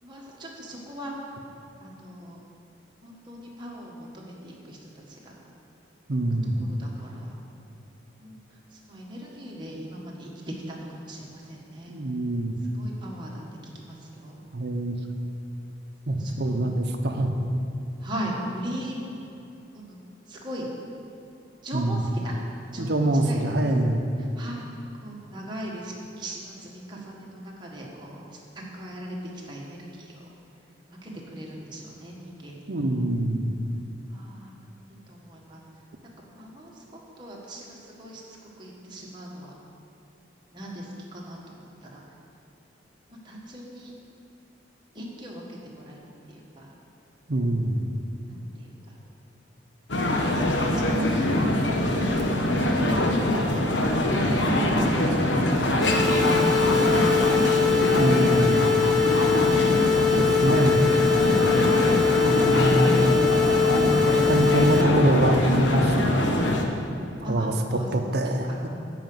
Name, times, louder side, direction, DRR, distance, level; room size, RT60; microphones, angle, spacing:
voice 1, 0.0-1.3 1.8-2.4 3.0-5.4 6.4-7.3 8.2-11.9 12.6-14.4 16.0-16.7 18.0-19.0 19.7-20.0 20.3-20.7 21.6-22.3 22.7-23.5 24.2-24.6 25.0-28.2 28.5-29.2 29.4-30.2 31.0-32.9 34.1-34.6 35.1-35.6 36.4-39.5 40.5-42.0 43.1-43.9 44.9-46.0 46.3-46.7 48.3-49.0 50.0-52.4 53.3-57.5 67.2-67.9 68.2-68.5, right 1 dB, 25° right, -3 dB, 1.5 m, -40 dB
voice 2, 6.1-6.6 11.9-12.6 14.5-15.0 16.1-17.3 21.7-22.0 22.8-24.0 32.7-33.5 47.3-47.8 57.9-58.8 60.2-60.9 62.2-63.0 63.7-66.2 66.5-66.6 67.3-67.5 67.9-68.7, right 1 dB, 60° right, 5 dB, 0.8 m, -24 dB
sound 1, 49.9-66.6, left 1 dB, 80° left, 0.9 m, -23 dB
sound 2, 55.8-64.8, left 6 dB, ahead, 0.7 m, -22 dB
11.0 x 5.1 x 7.8 m, 2.7 s
head